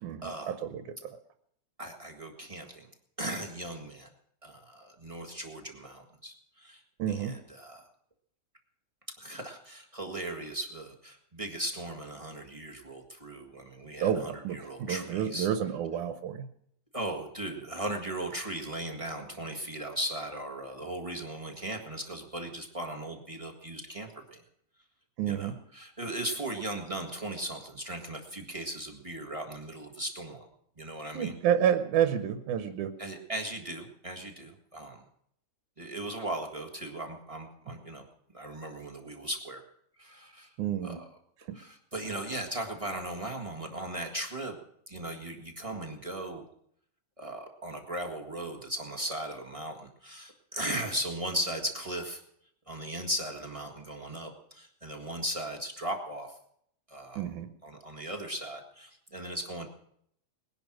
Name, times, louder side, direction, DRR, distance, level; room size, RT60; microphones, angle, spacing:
voice 1, 0.0-1.2 7.0-7.4 14.0-16.5 25.2-25.6 31.1-33.0 40.6-41.0 41.5-41.6 57.2-57.5, right 9 dB, 80° right, 8 dB, 2.3 m, -30 dB
voice 2, 1.8-2.9 3.2-4.1 4.4-6.8 7.1-7.8 9.2-15.5 16.9-24.4 25.3-30.4 30.8-31.3 33.0-35.0 35.8-38.1 38.3-39.6 40.0-40.5 40.8-41.0 41.5-44.6 44.9-46.4 47.2-52.2 52.7-56.4 56.9-57.2 57.6-59.7, right 1 dB, 20° right, 2 dB, 0.9 m, -37 dB
20.5 x 11.0 x 6.1 m, 0.70 s
omnidirectional pair, 3.6 m